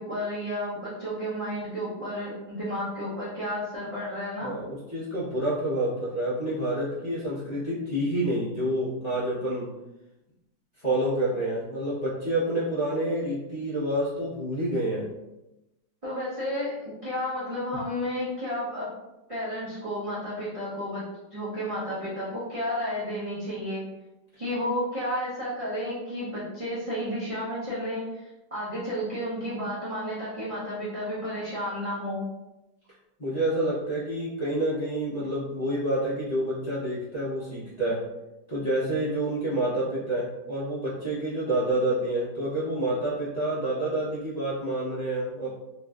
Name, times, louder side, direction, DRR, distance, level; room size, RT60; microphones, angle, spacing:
voice 1, 0.0-4.5 16.0-18.9 19.3-21.0 21.3-23.8 24.4-32.3, equal, 60° right, -10 dB, 0.3 m, -32 dB
voice 2, 4.4-9.7 10.8-15.1 33.2-38.0 38.5-45.5, right 1 dB, 40° left, -11 dB, 0.6 m, -28 dB
2.9 x 2.6 x 2.3 m, 0.95 s
omnidirectional pair, 1.8 m